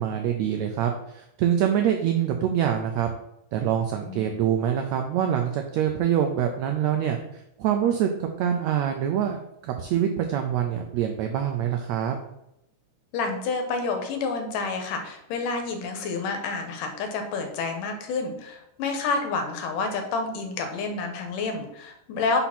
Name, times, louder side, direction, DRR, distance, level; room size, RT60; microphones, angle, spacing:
voice 1, 0.0-3.1 3.5-12.2, right 9 dB, 85° right, 4 dB, 1.6 m, -25 dB
voice 2, 13.1-22.4, left 4 dB, 85° left, 4 dB, 2.5 m, -29 dB
5.6 x 4.1 x 5.8 m, 0.82 s
omnidirectional pair, 3.8 m